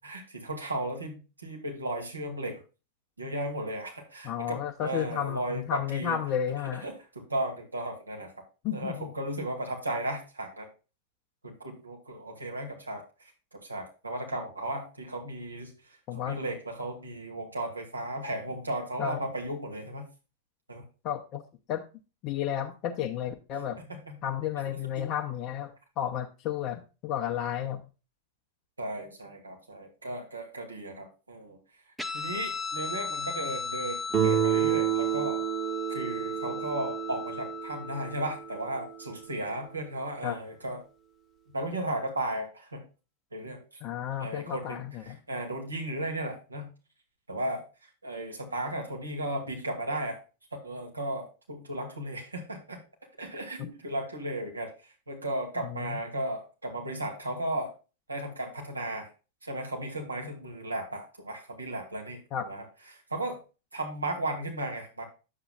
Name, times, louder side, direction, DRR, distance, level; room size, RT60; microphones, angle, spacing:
voice 1, 0.0-2.6 3.2-6.2 6.8-8.3 8.7-10.7 11.4-15.7 16.2-20.1 20.7-20.8 23.9-24.2 25.0-25.1 28.8-31.6 32.1-35.4 35.9-40.8 41.5-42.8 43.3-43.6 44.2-46.7 47.3-47.6 48.0-50.2 50.5-52.8 53.2-57.7 58.1-59.1 59.4-62.6 62.9-63.4 63.7-65.1, right 1 dB, 80° right, 1 dB, 2.3 m, -35 dB
voice 2, 4.2-6.9 8.6-9.1 16.1-16.4 19.0-19.2 21.0-21.4 21.7-21.8 22.2-23.8 24.2-27.9 40.2-40.4 43.8-45.2 53.6-53.7 55.6-56.0 62.3-62.5, left 10 dB, 40° left, 3 dB, 0.8 m, -32 dB
Guitar, 32.0-38.9, left 6 dB, ahead, 0.7 m, -37 dB
Guitar 2, 34.1-38.9, right 10 dB, 25° right, 1.4 m, -29 dB
9.8 x 7.8 x 2.3 m, 0.31 s
figure-of-eight pair, 90°, 0 cm